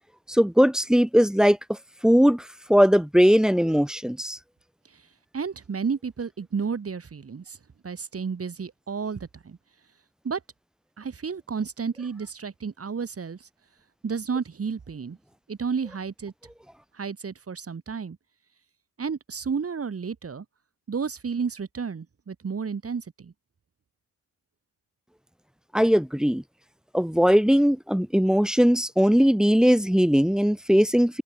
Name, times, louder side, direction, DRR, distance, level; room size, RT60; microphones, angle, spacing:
voice 1, 0.3-1.6 2.0-4.4 25.7-26.4 26.9-31.2, equal, ahead, 0.6 m, -19 dB
voice 2, 5.3-7.6 7.8-9.6 10.2-10.4 11.0-13.5 14.0-15.2 15.5-16.3 16.9-18.2 19.0-20.5 20.9-23.3, right 5 dB, 35° right, 1.6 m, -31 dB
hypercardioid pair, 45°, 40 cm